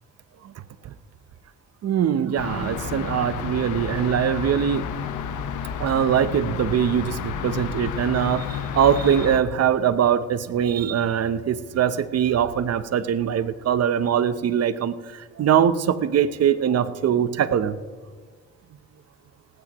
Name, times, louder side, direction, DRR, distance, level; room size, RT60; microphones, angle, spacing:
voice 1, 1.8-4.8 5.8-17.8, right 9 dB, 55° right, 14 dB, 0.8 m, -22 dB
sound 1, 2.4-9.4, left 8 dB, 85° left, 1.1 m, -31 dB
18.0 x 16.5 x 3.0 m, 1.5 s
cardioid pair, 90°, 30 cm